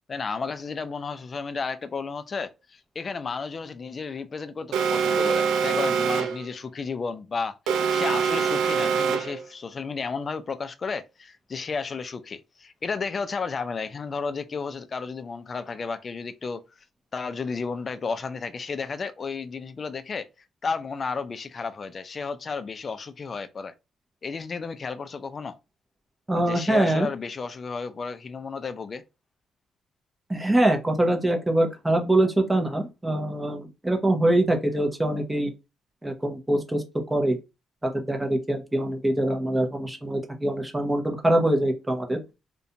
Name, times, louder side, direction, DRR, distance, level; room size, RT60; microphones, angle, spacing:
voice 1, 0.1-16.6 17.1-20.3 20.6-23.7 24.2-25.5 26.5-29.0, left 5 dB, 40° left, 0.4 m, -33 dB
Alarm, 4.7-6.5 7.7-9.5, right 6 dB, 85° right, 0.3 m, -24 dB
voice 2, 26.3-27.1 30.3-35.5 36.0-36.8 37.1-37.4 37.8-42.2, right 1 dB, 15° right, 0.6 m, -24 dB
2.4 x 2.1 x 2.7 m
cardioid pair, 90°, 0 cm